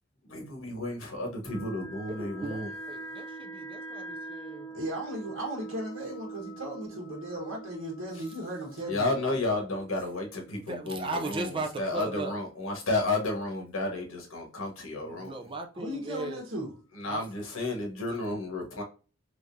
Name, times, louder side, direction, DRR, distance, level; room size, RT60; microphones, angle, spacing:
voice 1, 0.2-2.7 8.9-15.4 16.2-16.3 17.0-18.8, left 2 dB, 85° left, 1.1 m, -32 dB
sound 1, 1.5-11.0, right 2 dB, 10° left, 1.4 m, -43 dB
voice 2, 2.1-4.7 10.5-12.4 15.0-16.4 17.1-17.2, right 3 dB, 25° right, 0.5 m, -37 dB
voice 3, 4.7-9.4 15.7-16.7, right 1 dB, 80° right, 1.3 m, -36 dB
3.6 x 3.1 x 2.6 m
head